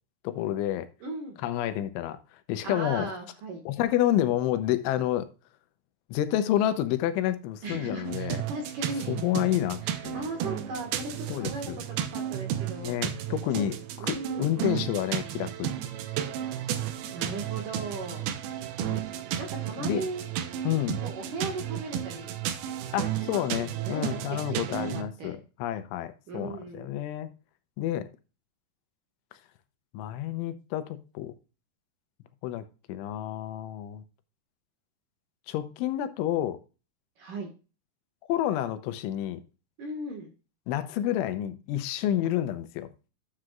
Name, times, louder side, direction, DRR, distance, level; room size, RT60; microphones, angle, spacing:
voice 1, 0.2-0.9 1.4-3.1 3.7-5.3 6.1-8.4 9.1-10.2 11.3-11.8 12.8-13.7 14.0-15.7 18.9-19.0 19.8-20.0 20.6-21.0 22.9-27.3 27.8-28.1 29.9-31.3 32.4-34.0 35.5-36.6 38.3-39.4 40.7-42.9, left 12 dB, 85° left, 3.2 m, -29 dB
voice 2, 1.0-1.4 2.6-3.6 7.6-9.2 9.8-13.0 13.6-13.7 14.0-14.5 17.1-18.3 19.4-20.3 21.0-22.3 23.2-24.2 24.7-25.4 26.3-27.0 37.2-37.5 39.8-40.3, right 2 dB, 60° right, 2.5 m, -37 dB
sound 1, 8.0-25.0, right 10 dB, 75° right, 2.3 m, -33 dB
11.5 x 7.6 x 2.4 m
omnidirectional pair, 5.4 m